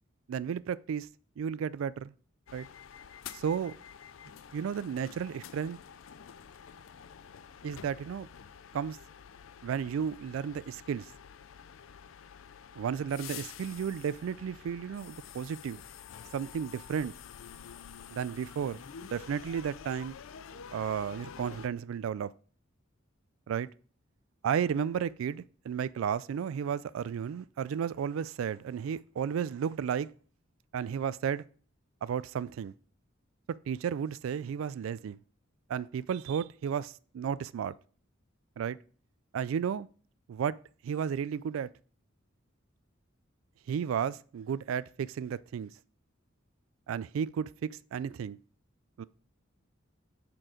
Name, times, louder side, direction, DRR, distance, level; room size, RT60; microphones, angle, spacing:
voice 1, 0.3-1.1 1.4-2.1 2.5-2.7 3.3-3.7 4.5-5.8 7.6-8.3 8.7-9.0 9.6-11.1 12.8-15.8 16.3-17.1 18.1-20.2 20.7-22.3 23.5-23.7 24.4-30.1 30.7-31.4 32.0-32.7 33.7-35.2 35.7-37.7 38.6-38.8 39.3-39.9 40.3-40.6 40.8-41.7 43.7-45.7 46.9-48.4 49.0-49.1, right 7 dB, 75° right, 0.3 m, -33 dB
sound 1, 2.5-21.7, left 8 dB, 75° left, 0.5 m, -49 dB
6.2 x 4.5 x 4.9 m
head